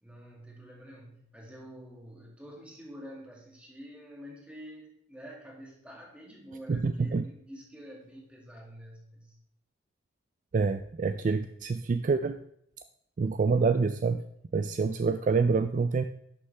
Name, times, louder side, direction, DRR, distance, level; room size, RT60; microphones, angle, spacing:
voice 1, 0.0-9.4, equal, 5° right, -2 dB, 2.1 m, -48 dB
voice 2, 6.7-7.2 10.5-12.4 13.2-14.2 14.5-16.0, right 4 dB, 40° right, 9 dB, 0.3 m, -27 dB
11.0 x 6.4 x 3.4 m, 0.73 s
head